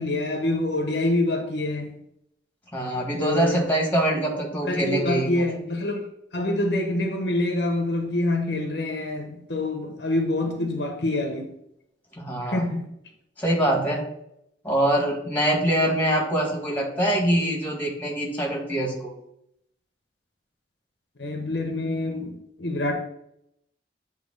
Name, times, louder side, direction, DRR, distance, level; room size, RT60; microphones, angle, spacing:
voice 1, 0.0-1.9 3.2-3.6 4.6-6.0 6.3-11.5 12.4-12.9 21.2-23.0, left 2 dB, 70° left, 0.9 m, -26 dB
voice 2, 2.7-5.4 12.1-12.7 13.4-14.0 14.6-19.1, right 1 dB, 10° left, 1.7 m, -24 dB
8.1 x 3.0 x 5.3 m
head